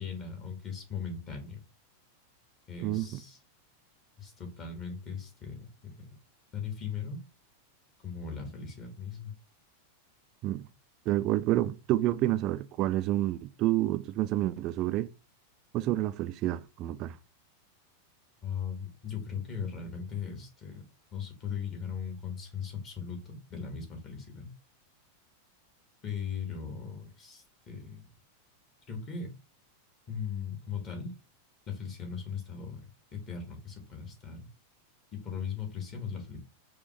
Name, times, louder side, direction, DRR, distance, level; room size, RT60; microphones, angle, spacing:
voice 1, 0.0-1.6 2.7-3.4 4.2-6.0 6.5-7.2 8.0-9.3 18.4-20.8 21.1-24.5 26.0-28.1 28.9-29.3 30.1-31.1 31.7-32.8 33.1-34.5 35.1-36.4, left 6 dB, 30° left, 1.6 m, -38 dB
voice 2, 2.8-3.2 10.4-10.7 11.1-15.1 15.7-17.2, right 15 dB, 40° right, 0.3 m, -29 dB
4.7 x 2.9 x 3.2 m
figure-of-eight pair, 90°, 0 cm